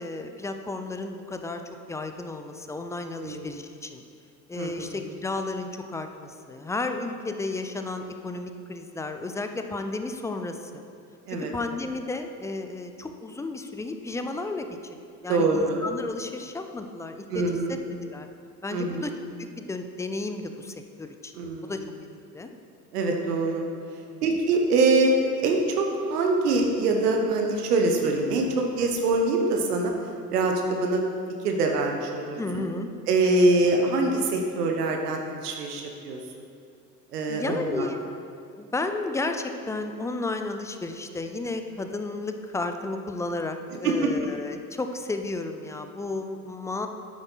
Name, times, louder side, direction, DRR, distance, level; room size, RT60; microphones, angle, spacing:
voice 1, 0.0-1.6 1.9-4.0 4.5-10.9 11.3-15.0 15.2-17.4 17.7-18.3 18.6-19.1 19.4-21.3 21.6-21.8 22.3-22.5 24.1-24.2 32.4-32.9 37.3-38.0 38.4-46.9, left 2 dB, 5° left, 6 dB, 0.4 m, -33 dB
voice 2, 3.2-3.5 4.6-4.9 11.3-11.5 15.3-15.8 17.3-17.7 18.7-19.0 21.3-21.7 22.9-23.6 24.2-29.9 30.3-31.0 31.4-32.4 33.1-36.2 37.1-37.9 43.8-44.1, right 2 dB, 70° right, 2 dB, 1.2 m, -24 dB
8.9 x 8.8 x 4.0 m, 2.3 s
figure-of-eight pair, 65°, 48 cm